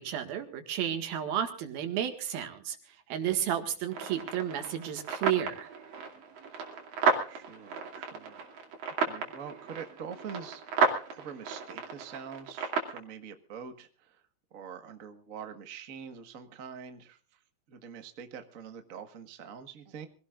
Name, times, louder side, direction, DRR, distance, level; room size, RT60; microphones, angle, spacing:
voice 1, 0.0-2.8 3.1-5.7, right 10 dB, 90° right, 6 dB, 3.7 m, -32 dB
sound 1, 3.9-13.0, right 5 dB, 70° right, 4.2 m, -33 dB
voice 2, 7.3-8.5 9.0-10.6 11.1-14.2 14.5-17.2 17.7-20.1, right 7 dB, 55° right, 7 dB, 0.9 m, -44 dB
25.0 x 17.5 x 2.5 m, 0.40 s
omnidirectional pair, 4.1 m